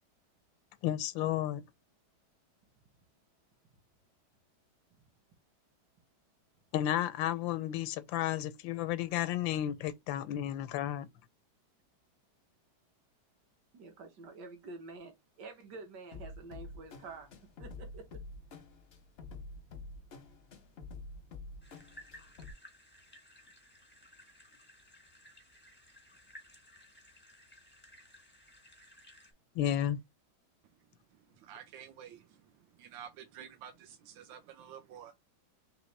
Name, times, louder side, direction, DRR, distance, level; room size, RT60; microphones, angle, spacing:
voice 1, 0.8-1.6 6.7-11.1 29.5-30.0, left 12 dB, 85° left, 1.3 m, -32 dB
voice 2, 13.7-17.3 17.6-18.2, right 3 dB, 65° right, 1.7 m, -48 dB
sound 1, 16.1-22.5, left 3 dB, 60° left, 0.6 m, -48 dB
sound 2, 21.6-29.3, equal, 10° left, 0.5 m, -57 dB
voice 3, 31.1-35.1, right 9 dB, 85° right, 1.4 m, -51 dB
4.0 x 3.1 x 3.2 m
omnidirectional pair, 2.0 m